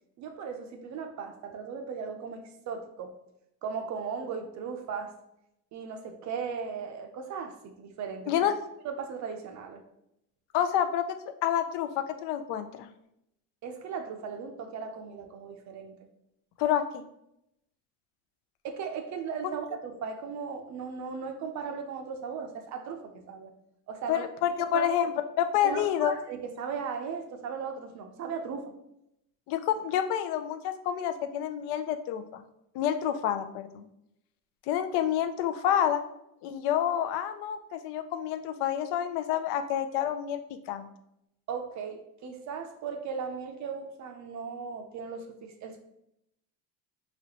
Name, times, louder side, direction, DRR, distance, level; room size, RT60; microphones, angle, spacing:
voice 1, 0.2-3.1 3.6-5.1 5.7-8.5 8.8-9.8 13.6-15.9 18.6-23.5 23.9-24.3 24.7-24.9 25.6-28.7 41.5-45.8, right 6 dB, 45° right, 5 dB, 0.5 m, -37 dB
voice 2, 10.5-11.1 11.4-12.9 16.6-17.0 24.1-25.1 25.4-26.1 29.5-32.4 32.7-33.9 34.7-36.0 36.4-40.4 40.7-40.9, left 10 dB, 85° left, 9 dB, 0.5 m, -28 dB
4.0 x 3.0 x 2.9 m, 0.80 s
cardioid pair, 145°, 39 cm